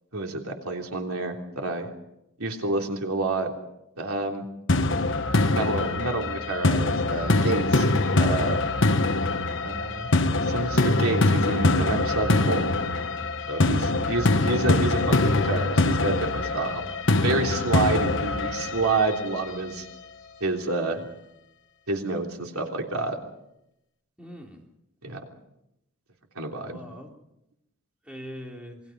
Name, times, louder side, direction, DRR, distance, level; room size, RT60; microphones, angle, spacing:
voice 1, 0.1-1.9 2.4-3.5 4.0-4.4 5.5-7.9 8.2-8.6 9.6-10.1 10.4-12.7 13.5-16.8 17.2-19.9 20.4-21.0 21.9-23.2 25.0-25.2 26.4-26.8, right 3 dB, 75° right, 2 dB, 3.3 m, -28 dB
sound 1, 4.7-19.7, left 2 dB, 55° left, 1.3 m, -23 dB
voice 2, 24.2-24.6 26.7-27.3 28.0-28.8, equal, 5° right, 0 dB, 3.6 m, -42 dB
27.5 x 21.5 x 5.4 m, 0.84 s
head